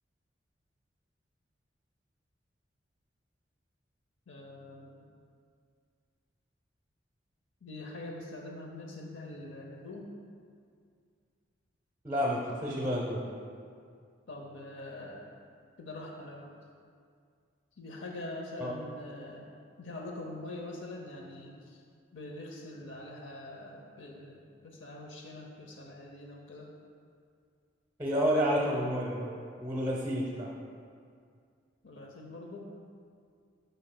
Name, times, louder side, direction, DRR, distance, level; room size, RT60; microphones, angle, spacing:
voice 1, 4.3-5.1 7.6-10.1 14.3-15.3 15.8-16.5 17.8-19.5 19.8-21.8 22.1-26.7 31.8-32.7, left 2 dB, 85° left, 0 dB, 0.7 m, -44 dB
voice 2, 12.0-13.2 18.6-18.7 28.0-29.3 29.6-30.5, equal, 15° right, -3 dB, 0.7 m, -30 dB
11.5 x 5.2 x 2.2 m, 2.2 s
head